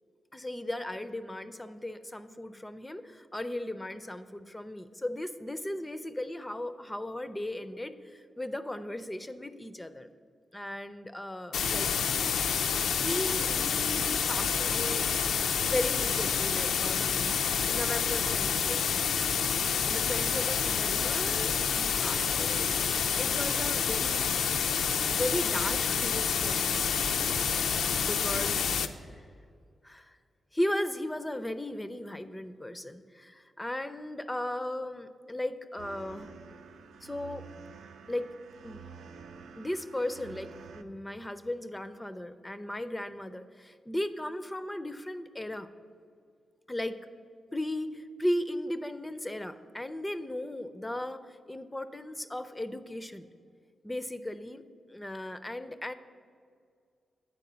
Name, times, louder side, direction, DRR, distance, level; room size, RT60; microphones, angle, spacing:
voice 1, 0.3-10.1 10.5-11.9 13.0-15.3 15.7-17.4 17.7-18.8 19.8-22.8 23.2-24.5 25.1-26.9 28.0-29.2 29.8-30.2 30.5-36.3 37.0-37.5 38.1-38.3 38.6-38.8 39.6-45.7 46.7-47.0 47.5-53.3 53.8-54.6 54.9-55.9, left 1 dB, 10° left, 11 dB, 0.3 m, -36 dB
sound 1, 11.5-28.9, left 6 dB, 90° left, 0.4 m, -28 dB
sound 2, 35.8-40.8, right 6 dB, 80° right, 0.5 m, -49 dB
8.3 x 4.5 x 6.7 m, 2.3 s
cardioid pair, 115°, 0 cm